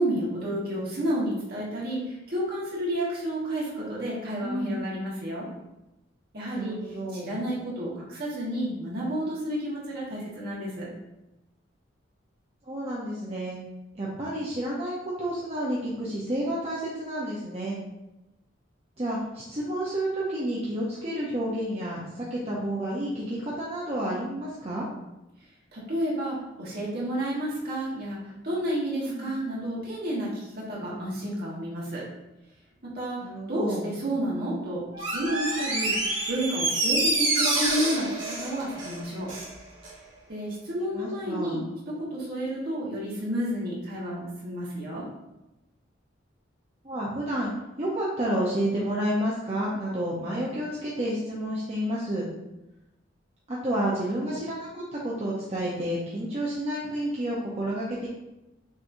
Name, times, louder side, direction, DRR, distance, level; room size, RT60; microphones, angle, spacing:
voice 1, 0.0-5.5 6.3-10.9 25.7-32.1 32.8-39.3 40.3-45.1, right 1 dB, 50° right, -5 dB, 1.6 m, -31 dB
voice 2, 4.4-4.9 6.5-7.3 12.7-13.6 14.0-17.8 19.0-24.9 29.0-29.3 30.8-31.1 33.2-33.9 40.9-41.6 46.8-52.3 53.5-58.1, right 1 dB, 35° right, -6 dB, 0.8 m, -30 dB
Door, 34.9-39.5 39.8-39.9, right 2 dB, 85° right, 1.4 m, -27 dB
6.2 x 3.1 x 2.7 m, 0.95 s
head